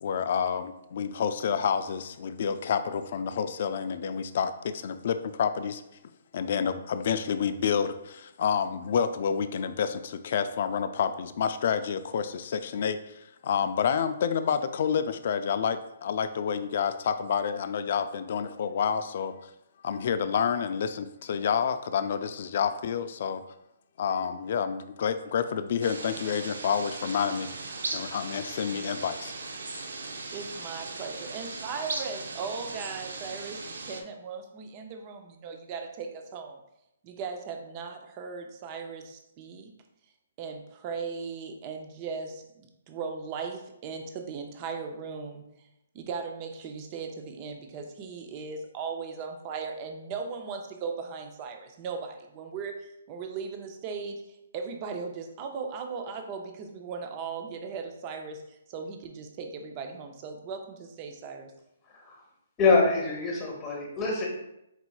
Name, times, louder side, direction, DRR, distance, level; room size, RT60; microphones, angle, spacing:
voice 1, 0.0-5.8 6.3-19.5 19.8-23.4 24.0-27.5 27.9-29.3 29.7-29.8, left 7 dB, 50° left, 10 dB, 0.3 m, -29 dB
sound 1, 25.8-34.0, right 3 dB, 85° right, 0.5 m, -38 dB
voice 2, 30.3-36.6 37.0-39.7 40.4-45.4 45.9-61.5, right 5 dB, 25° right, 5 dB, 0.4 m, -38 dB
voice 3, 62.6-64.3, left 4 dB, 15° left, -1 dB, 1.0 m, -25 dB
4.4 x 4.0 x 2.3 m, 0.84 s
hypercardioid pair, 165°, 0 cm